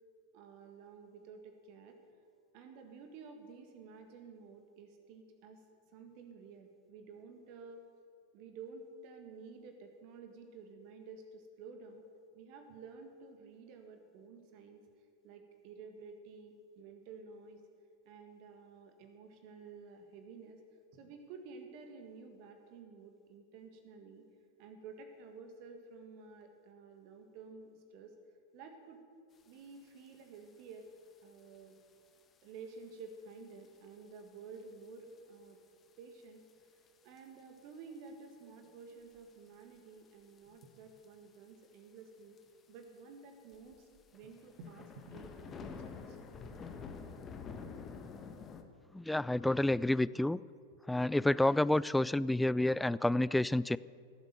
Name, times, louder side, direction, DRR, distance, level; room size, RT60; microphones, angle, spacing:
voice 1, 0.3-2.0 2.5-5.6 5.9-7.8 8.3-12.0 12.3-14.8 15.2-17.6 18.1-20.6 20.9-24.2 24.6-28.1 28.5-29.0 29.4-30.9 31.2-31.8 32.4-35.6 36.0-36.4 37.0-42.4 42.7-46.2 46.5-46.6 47.6-47.7, right 4 dB, 45° right, 6 dB, 1.8 m, -52 dB
sound 1, 30.0-30.1 30.3-30.7 31.4-31.6 32.2-32.3 32.9-33.0 33.3-33.4 33.6-33.7 34.8-35.1 35.5-35.6 36.5-36.6 37.2-37.6 38.0-38.1 38.6-39.3 40.4-40.7 41.0-41.1 41.3-41.4 41.6-41.7 42.4-42.5 42.8-42.9 43.5-48.6, left 5 dB, 25° left, 1.4 m, -48 dB
voice 2, 48.9-50.4 50.9-53.8, left 1 dB, 5° left, 19 dB, 0.3 m, -29 dB
17.5 x 8.1 x 9.4 m, 2.3 s
figure-of-eight pair, 90°, 0 cm